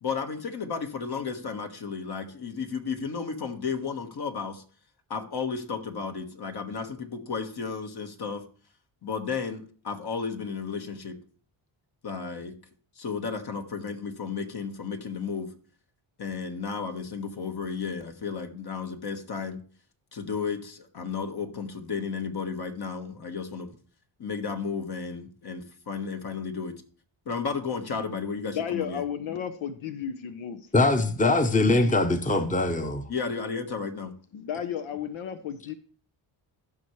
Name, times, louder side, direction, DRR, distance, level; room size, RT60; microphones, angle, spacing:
voice 1, 0.0-4.6 5.1-8.4 9.0-11.2 12.0-12.6 13.0-15.5 16.2-19.6 20.1-23.7 24.2-26.8 27.2-29.0 33.1-34.1, left 5 dB, 50° left, 1.5 m, -33 dB
voice 2, 28.5-30.7 34.3-35.7, left 8 dB, 75° left, 0.9 m, -33 dB
voice 3, 30.7-33.0, left 2 dB, 15° left, 0.9 m, -22 dB
14.5 x 5.9 x 3.2 m
cardioid pair, 80°, 49 cm